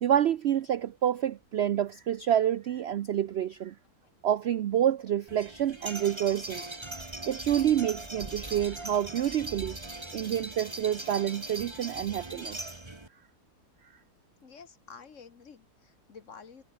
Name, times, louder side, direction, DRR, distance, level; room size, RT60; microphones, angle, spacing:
voice 1, 0.0-3.7 4.2-6.6 7.3-9.8 10.1-12.7, right 10 dB, 80° right, 0.5 m, -28 dB
sound 1, 5.3-13.1, right 2 dB, 15° right, 2.0 m, -40 dB
voice 2, 14.4-16.6, left 6 dB, 50° left, 1.7 m, -50 dB
omnidirectional pair, 1.8 m